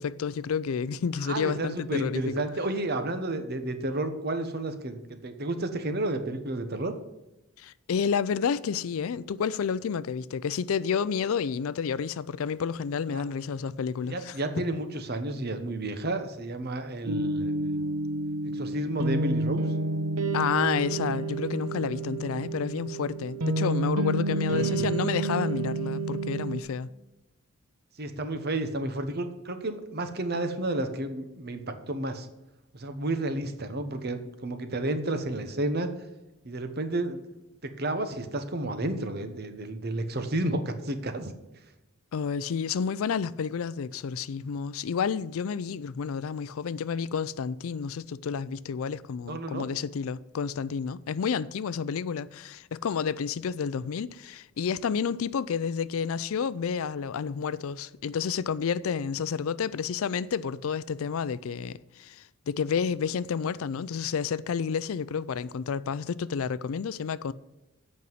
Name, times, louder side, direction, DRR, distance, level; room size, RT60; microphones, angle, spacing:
voice 1, 0.0-2.5 7.6-14.4 20.3-26.9 42.1-67.3, left 6 dB, 70° left, 0.4 m, -30 dB
voice 2, 1.2-6.9 13.1-13.2 14.0-17.8 18.5-19.6 24.2-24.9 28.0-32.3 32.7-35.9 36.4-37.2 37.6-41.3 49.3-49.7, right 2 dB, 45° right, 1.0 m, -31 dB
sound 1, 17.1-26.6, right 2 dB, 85° right, 0.9 m, -29 dB
8.4 x 5.5 x 7.8 m
head